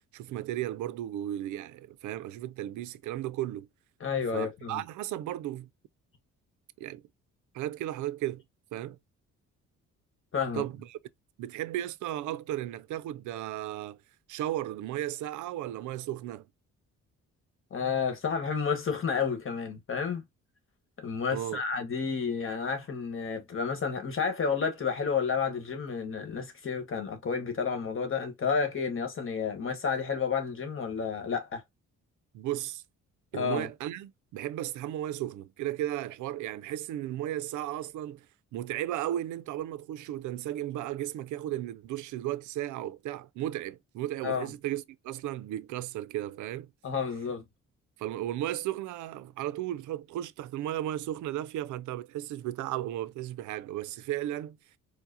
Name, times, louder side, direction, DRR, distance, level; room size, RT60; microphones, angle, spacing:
voice 1, 0.0-3.7 4.3-5.7 6.8-7.0 7.5-8.4 8.7-9.0 10.5-11.0 11.4-14.0 14.3-16.4 21.3-21.6 32.3-32.8 33.3-38.3 38.5-46.7 48.0-54.6, right 13 dB, 75° right, 0.4 m, -35 dB
voice 2, 4.0-4.8 10.3-10.6 17.7-20.2 21.0-31.6 33.3-33.7 44.2-44.5 46.8-47.4, left 6 dB, 45° left, 1.3 m, -31 dB
4.6 x 2.1 x 2.7 m
cardioid pair, 90°, 30 cm